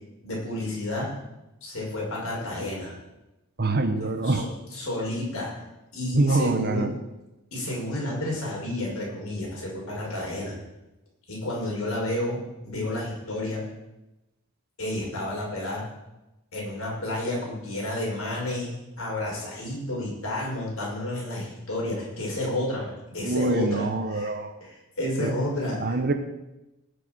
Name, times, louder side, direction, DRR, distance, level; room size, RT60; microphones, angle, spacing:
voice 1, 0.2-1.1 1.6-3.0 4.2-4.4 4.7-5.5 5.9-6.8 7.5-10.5 11.3-13.6 14.8-15.8 16.5-24.3 24.6-26.0, left 1 dB, 65° left, -3 dB, 6.0 m, -31 dB
voice 2, 3.6-4.5 6.1-7.0 23.2-24.5 25.2-25.3 25.8-26.1, right 2 dB, 45° right, 8 dB, 1.2 m, -24 dB
20.0 x 6.7 x 6.4 m, 0.98 s
head